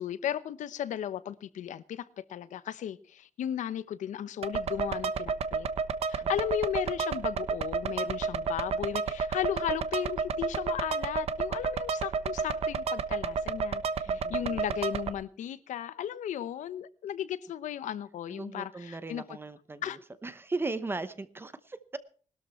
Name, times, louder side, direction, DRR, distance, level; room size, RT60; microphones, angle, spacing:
voice 1, 0.0-5.7 6.1-19.2 19.8-20.0, left 10 dB, 85° left, 16 dB, 0.9 m, -35 dB
sound 1, 4.4-15.1, right 5 dB, 55° right, 1.2 m, -31 dB
voice 2, 14.1-14.6 18.3-22.0, right 3 dB, 20° right, 14 dB, 0.9 m, -38 dB
20.5 x 13.0 x 4.4 m, 0.42 s
wide cardioid pair, 155°, 12 cm